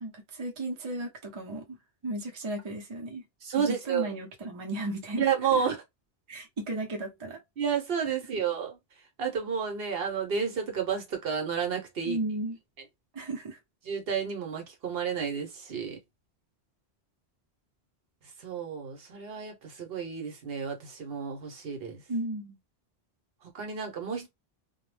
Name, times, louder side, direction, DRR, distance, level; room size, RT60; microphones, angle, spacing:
voice 1, 0.0-1.8 2.0-3.2 3.5-5.6 6.3-7.4 12.0-12.6 13.1-13.6 22.1-22.5, right 2 dB, 30° right, 0.6 m, -35 dB
voice 2, 3.4-4.1 5.2-5.8 7.6-8.8 9.2-12.2 13.8-16.0 18.4-22.0 23.4-24.3, right 7 dB, 65° right, 1.0 m, -31 dB
2.2 x 2.1 x 3.2 m
omnidirectional pair, 1.1 m